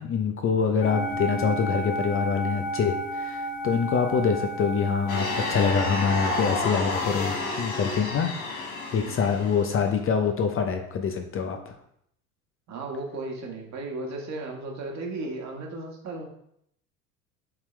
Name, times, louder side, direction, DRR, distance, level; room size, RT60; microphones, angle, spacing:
voice 1, 0.0-11.7, left 6 dB, 30° left, 5 dB, 0.8 m, -25 dB
sound 1, 0.8-6.6, right 1 dB, 55° left, 1.8 m, -32 dB
sound 2, 5.1-9.7, left 2 dB, 75° left, 1.8 m, -30 dB
voice 2, 12.7-16.2, right 2 dB, 40° right, 0 dB, 1.8 m, -35 dB
7.5 x 4.5 x 3.3 m, 0.72 s
hypercardioid pair, 75°, 43 cm